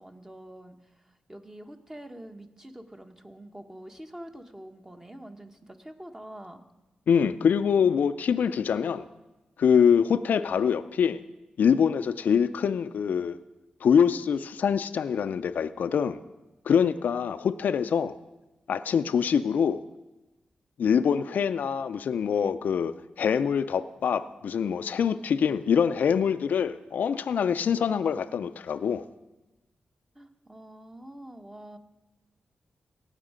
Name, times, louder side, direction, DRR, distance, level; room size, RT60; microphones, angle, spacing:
voice 1, 0.0-6.6 30.1-31.8, right 1 dB, 20° right, 5 dB, 1.4 m, -45 dB
voice 2, 7.1-9.1 9.6-11.2 11.6-13.4 13.8-16.2 16.7-18.2 18.7-19.8 20.8-29.0, left 7 dB, 75° left, 11 dB, 0.4 m, -24 dB
17.0 x 6.5 x 5.1 m, 1.1 s
cardioid pair, 50°, 3 cm